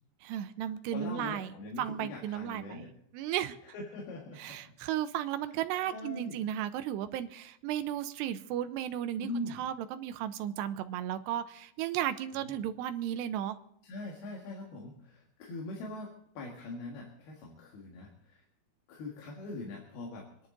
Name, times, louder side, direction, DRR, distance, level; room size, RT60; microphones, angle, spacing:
voice 1, 0.2-3.6 4.4-13.6, right 11 dB, 80° right, 10 dB, 2.7 m, -35 dB
voice 2, 0.9-2.9 3.7-4.6 5.9-6.4 9.2-9.6 12.4-12.6 13.8-16.1 16.4-18.4 18.9-20.5, left 3 dB, 65° left, -1 dB, 3.6 m, -42 dB
26.0 x 11.0 x 3.9 m, 0.69 s
omnidirectional pair, 5.2 m